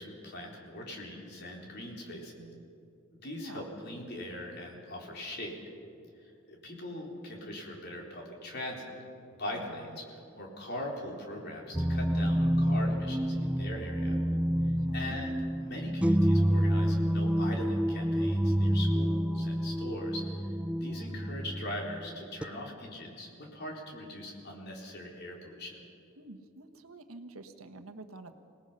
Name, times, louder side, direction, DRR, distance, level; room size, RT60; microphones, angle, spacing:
voice 1, 0.0-2.3 3.1-5.6 6.2-8.9 9.3-14.2 14.9-25.8, left 1 dB, 50° left, -1 dB, 3.9 m, -41 dB
voice 2, 2.1-2.6 3.4-3.7 9.5-10.0 14.6-15.2 26.2-28.3, right 2 dB, 85° right, 7 dB, 1.3 m, -48 dB
sound 1, 11.7-22.4, equal, 5° right, 0.5 m, -28 dB
26.5 x 18.5 x 5.7 m, 2.6 s
head